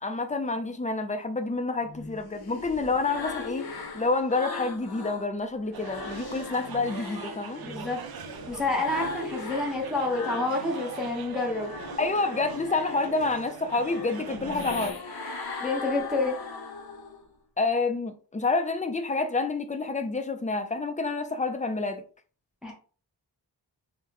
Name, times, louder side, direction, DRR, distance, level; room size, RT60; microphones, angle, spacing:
voice 1, 0.0-3.7 3.9-7.6 12.0-15.0 17.6-22.0, left 3 dB, 15° left, 0.5 m, -28 dB
sound 1, 1.8-5.3 5.6-11.0 11.4-17.3, left 4 dB, 55° left, 0.7 m, -39 dB
sound 2, 5.7-14.9, right 7 dB, 55° right, 0.5 m, -42 dB
voice 2, 7.6-8.0 8.5-11.7 15.6-16.4 22.6-22.7, left 2 dB, ahead, 1.0 m, -28 dB
3.5 x 2.1 x 2.9 m
wide cardioid pair, 45°, 45 cm